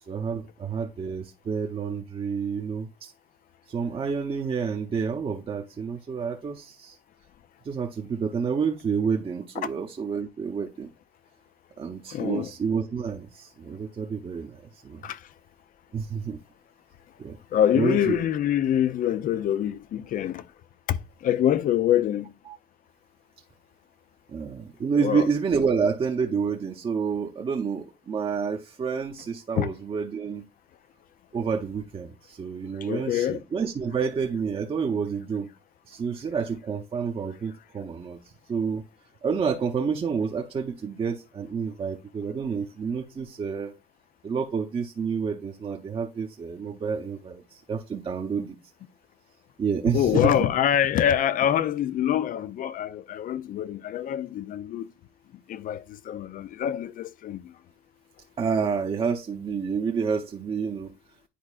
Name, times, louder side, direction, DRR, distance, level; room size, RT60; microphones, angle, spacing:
voice 1, 0.1-3.1 3.7-7.0 7.6-10.9 11.8-15.0 15.9-16.4 17.2-17.4 17.7-18.2 22.5-22.6 24.3-30.5 31.3-35.5 35.9-38.8 39.2-43.7 44.2-48.6 49.6-50.4 58.4-60.9, right 6 dB, 35° right, 0.8 m, -29 dB
voice 2, 12.1-12.5 15.0-15.2 17.5-20.4 20.9-21.0 21.2-22.3 25.0-25.3 29.6-29.7 32.8-33.4 49.9-54.9 55.5-57.4, left 10 dB, 55° left, 0.5 m, -25 dB
10.0 x 4.2 x 2.4 m
cardioid pair, 110°, 17 cm